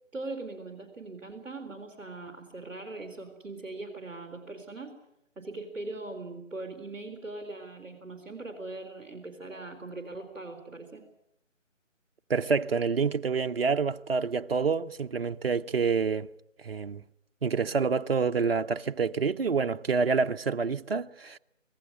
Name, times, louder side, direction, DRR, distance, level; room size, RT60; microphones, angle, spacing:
voice 1, 0.1-5.0 5.4-11.0, right 2 dB, 5° right, 2.5 m, -40 dB
voice 2, 12.3-16.3 16.6-17.0 17.4-21.4, right 5 dB, 50° right, 0.9 m, -27 dB
25.0 x 18.5 x 9.7 m
figure-of-eight pair, 165°, 39 cm